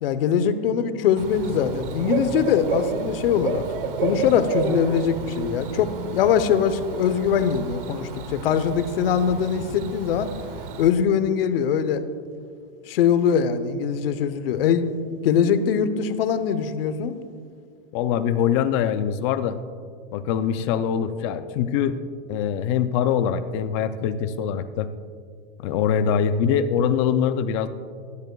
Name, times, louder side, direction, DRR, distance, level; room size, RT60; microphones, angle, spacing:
voice 1, 0.0-3.6 4.0-10.3 10.8-12.0 12.9-17.2, left 8 dB, 80° left, 11 dB, 0.8 m, -22 dB
Bird / Cricket, 1.2-10.9, right 6 dB, 65° right, 1.0 m, -31 dB
voice 2, 17.9-19.6 20.1-22.0 22.3-24.9 25.6-27.7, left 8 dB, 30° left, 11 dB, 0.4 m, -23 dB
16.0 x 10.5 x 2.3 m, 2.1 s
supercardioid pair, 160°, 29 cm